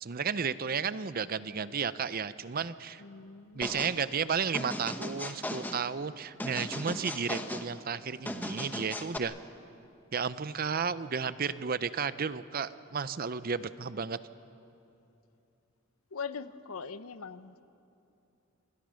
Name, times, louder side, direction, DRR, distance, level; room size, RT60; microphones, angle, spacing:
voice 1, 0.0-3.0 3.5-9.3 10.1-14.2, right 6 dB, 40° right, 15 dB, 0.6 m, -33 dB
voice 2, 3.0-3.8 16.1-17.6, left 5 dB, 75° left, 13 dB, 0.8 m, -41 dB
sound 1, 3.6-4.0 4.5-5.8 6.4-7.7 8.3-9.2, left 1 dB, 10° left, 1.1 m, -37 dB
26.5 x 23.0 x 6.4 m, 2.7 s
head